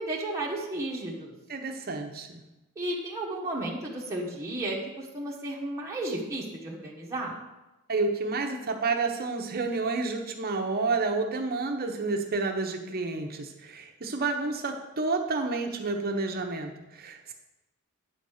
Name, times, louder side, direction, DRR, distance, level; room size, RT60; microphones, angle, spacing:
voice 1, 0.0-1.3 2.7-7.4, right 1 dB, 15° right, -4 dB, 1.3 m, -33 dB
voice 2, 1.5-2.4 7.9-17.3, right 3 dB, 45° right, 4 dB, 0.9 m, -30 dB
9.4 x 4.2 x 6.4 m, 1.0 s
head